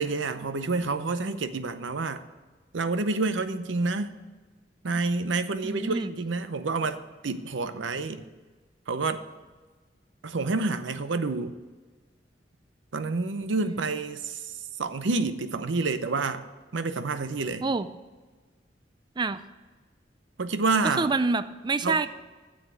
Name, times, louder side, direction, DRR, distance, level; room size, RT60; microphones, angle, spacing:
voice 1, 0.0-2.2 2.7-4.1 4.8-8.3 8.9-9.2 10.2-11.5 12.9-16.4 16.7-17.7 20.4-21.1 21.8-22.0, right 3 dB, 90° right, 11 dB, 0.7 m, -28 dB
voice 2, 5.6-6.1 13.6-13.8 17.6-17.9 19.2-19.4 20.8-22.1, right 3 dB, 25° right, 13 dB, 0.3 m, -27 dB
7.7 x 7.3 x 8.3 m, 1.3 s
head